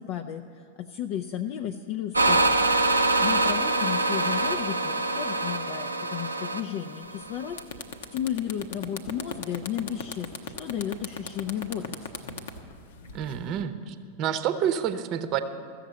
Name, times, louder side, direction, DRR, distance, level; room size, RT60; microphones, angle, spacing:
voice 1, 0.0-12.3, left 10 dB, 45° left, 4 dB, 0.5 m, -34 dB
sound 1, 2.1-7.6, right 2 dB, 80° right, 0.6 m, -25 dB
sound 2, 7.1-7.2 7.5-13.6, left 6 dB, 60° left, 0.8 m, -37 dB
voice 2, 13.1-15.4, right 9 dB, 40° right, 10 dB, 0.8 m, -28 dB
14.0 x 7.2 x 8.2 m, 2.3 s
figure-of-eight pair, 90°, 0 cm